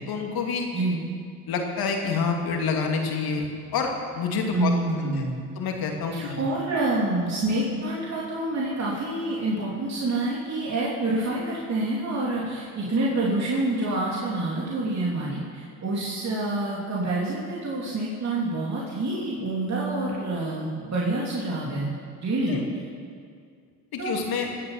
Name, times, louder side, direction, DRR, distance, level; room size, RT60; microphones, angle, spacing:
voice 1, 0.1-0.7 1.5-4.7 5.0-5.1 5.6-6.4 22.5-22.6 23.9-24.5, left 5 dB, 65° left, 2 dB, 2.7 m, -27 dB
voice 2, 0.7-1.1 4.5-5.6 6.1-21.9 22.2-22.5 24.0-24.2, right 2 dB, 45° right, -5 dB, 3.2 m, -27 dB
21.0 x 8.1 x 7.3 m, 2.2 s
supercardioid pair, 80°, 39 cm